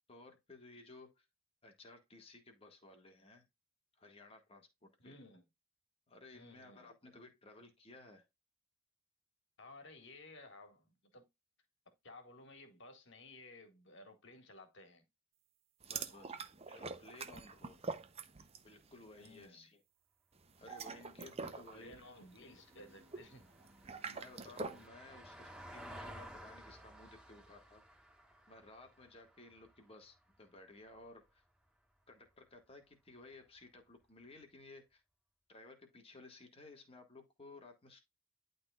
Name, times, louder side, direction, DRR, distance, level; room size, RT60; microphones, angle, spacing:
voice 1, 0.1-1.3 1.6-3.5 4.0-5.2 6.1-8.3 15.9-16.4 16.7-17.8 18.6-19.8 20.6-22.0 24.0-27.8 28.5-31.4 32.1-35.0 35.5-38.0, left 2 dB, 25° left, 1.7 m, -57 dB
voice 2, 5.0-5.5 6.3-6.9 9.6-11.2 11.9-15.0 19.2-19.7 21.4-23.5, left 2 dB, 55° left, 1.9 m, -56 dB
sound 1, 15.8-18.7 19.0-19.3 20.5-24.9, right 4 dB, 30° right, 0.7 m, -45 dB
Vehicle, 20.6-31.0 33.3-33.4, equal, 5° right, 2.3 m, -56 dB
11.5 x 3.9 x 2.4 m
head